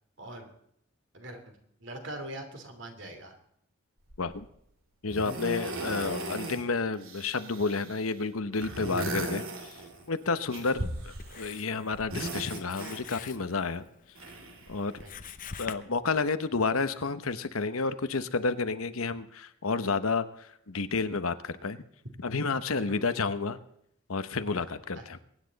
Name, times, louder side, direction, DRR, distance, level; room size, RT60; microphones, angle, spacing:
voice 1, 0.2-0.5 1.1-3.4 15.0-15.1 22.8-23.2 24.5-24.6 24.9-25.0, right 1 dB, 60° right, 5 dB, 2.9 m, -43 dB
sound 1, 4.1-4.4 5.1-6.6 6.9-8.1 8.5-10.1 10.5-11.6 11.9-13.4 14.1-15.2 16.1-16.2, right 2 dB, 75° right, 2.6 m, -37 dB
voice 2, 5.0-9.4 10.1-13.8 14.7-14.9 15.6-20.3 20.7-21.8 22.2-23.6 24.1-25.2, left 4 dB, 85° left, 11 dB, 1.0 m, -30 dB
Writing, 9.6-15.7, left 6 dB, 40° left, 0.8 m, -47 dB
23.0 x 10.0 x 4.1 m, 0.73 s
head